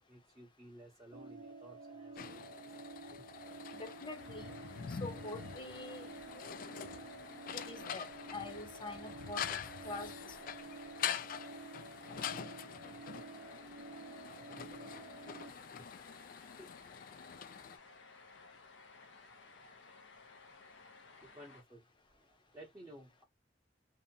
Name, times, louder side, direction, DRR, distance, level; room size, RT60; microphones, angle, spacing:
voice 1, 0.1-2.8 3.0-3.3 12.5-12.7 14.3-14.7 15.7-15.9 16.6-16.7 20.7-21.8 22.1-23.2, right 1 dB, 15° right, 0.8 m, -57 dB
sound 1, 1.1-15.5, right 3 dB, 75° right, 0.4 m, -51 dB
sound 2, 2.2-17.8, left 8 dB, 50° left, 0.3 m, -45 dB
sound 3, 3.3-21.6, left 4 dB, 90° left, 0.7 m, -58 dB
voice 2, 3.7-4.6 4.9-6.1 7.5-9.6 9.8-10.4, left 2 dB, 25° left, 0.7 m, -45 dB
2.6 x 2.1 x 2.6 m
head